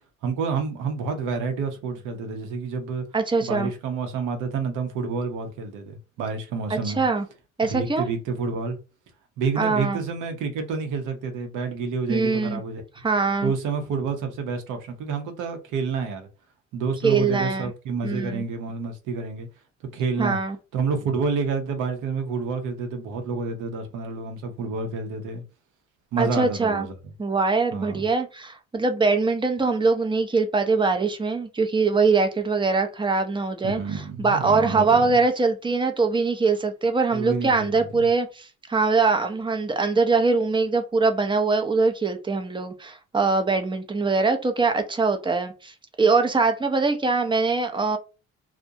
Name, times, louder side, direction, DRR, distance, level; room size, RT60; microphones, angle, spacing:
voice 1, 0.2-3.0 3.4-7.0 7.7-8.8 9.4-12.8 13.4-16.3 16.7-19.5 19.9-20.4 20.7-25.4 26.1-26.9 27.7-28.1 33.6-35.1 37.1-37.9, right 4 dB, 85° right, 0.8 m, -29 dB
voice 2, 3.1-3.7 6.7-7.3 7.6-8.0 9.6-10.0 12.1-12.6 13.0-13.5 17.0-17.7 18.0-18.4 20.2-20.6 26.2-26.9 27.2-45.7 46.0-48.0, right 4 dB, 15° right, 0.5 m, -22 dB
2.4 x 2.1 x 2.7 m
cardioid pair, 90°, 30 cm